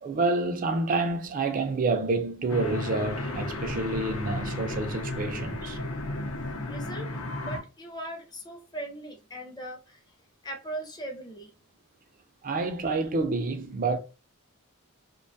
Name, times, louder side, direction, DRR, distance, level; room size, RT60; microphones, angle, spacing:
voice 1, 0.0-5.8 12.4-14.0, right 3 dB, 40° right, 0.4 m, -28 dB
sound 1, 2.5-7.6, left 1 dB, 75° left, 0.7 m, -33 dB
voice 2, 6.7-7.1 7.4-10.0 10.4-11.5, right 1 dB, 20° left, 0.6 m, -39 dB
2.5 x 2.2 x 2.6 m
head